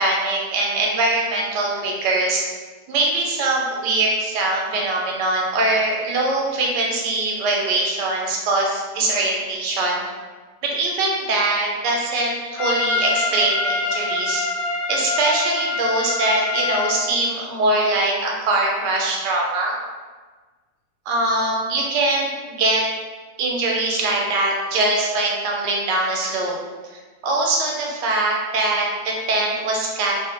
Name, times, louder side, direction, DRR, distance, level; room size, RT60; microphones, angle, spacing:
voice 1, 0.0-2.5 2.9-10.0 10.6-14.4 14.9-19.8 21.1-22.8 23.4-26.5 27.2-30.1, right 2 dB, 85° right, -1 dB, 1.2 m, -22 dB
Trumpet, 12.6-17.0, left 3 dB, 80° left, 1.2 m, -24 dB
2.9 x 2.1 x 2.9 m, 1.4 s
omnidirectional pair, 1.8 m